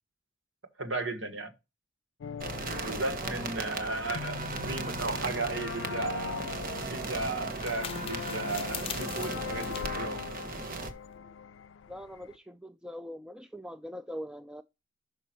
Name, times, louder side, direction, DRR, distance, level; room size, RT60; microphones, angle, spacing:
voice 1, 0.8-1.5 2.8-6.4 6.9-10.2, right 3 dB, 75° right, 1.5 m, -35 dB
sound 1, 2.2-12.4, left 6 dB, 90° left, 0.4 m, -41 dB
sound 2, 2.4-10.9, right 3 dB, 50° right, 1.1 m, -37 dB
sound 3, 6.0-11.2, left 8 dB, 30° left, 0.7 m, -44 dB
voice 2, 11.9-14.6, equal, 5° right, 0.3 m, -43 dB
5.9 x 5.2 x 4.5 m
head